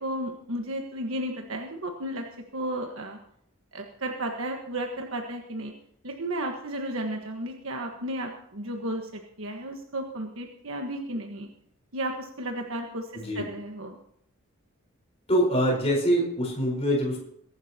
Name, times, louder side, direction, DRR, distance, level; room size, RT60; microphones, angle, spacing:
voice 1, 0.0-2.3 2.5-3.2 3.7-5.7 6.0-11.5 11.9-13.9, right 1 dB, 65° right, 2 dB, 1.5 m, -33 dB
voice 2, 15.3-17.2, equal, 30° left, -1 dB, 4.6 m, -24 dB
23.0 x 11.5 x 2.9 m, 0.71 s
head